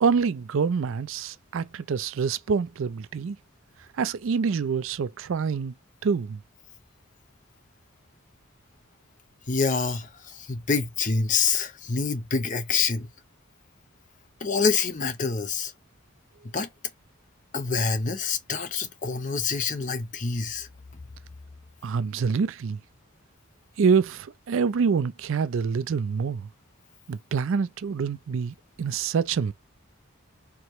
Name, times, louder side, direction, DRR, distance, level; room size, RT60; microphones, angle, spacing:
voice 1, 0.0-3.4 4.0-5.7 6.0-6.4 21.8-22.8 23.8-26.5 27.1-29.5, right 5 dB, 65° right, 0.4 m, -26 dB
voice 2, 9.5-13.1 14.4-15.7 16.5-16.7 17.5-20.7, left 5 dB, 35° left, 0.8 m, -26 dB
4.6 x 2.9 x 3.1 m
head